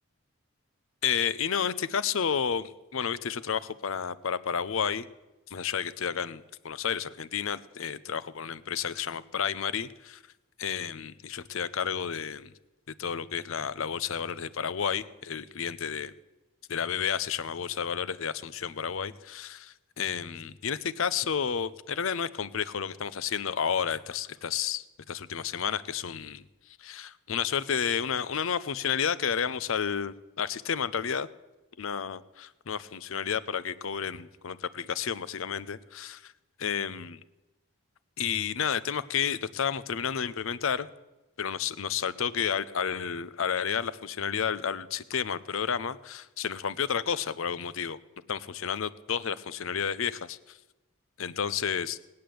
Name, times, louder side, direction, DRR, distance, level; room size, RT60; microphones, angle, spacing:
voice 1, 1.0-5.1 5.5-10.2 10.6-12.5 13.0-16.1 16.7-26.4 26.8-31.3 31.8-36.3 36.6-37.2 38.2-40.9 41.4-48.0 48.3-50.6 51.2-52.0, left 7 dB, 70° left, 17 dB, 0.6 m, -31 dB
19.0 x 8.6 x 7.7 m, 1.1 s
head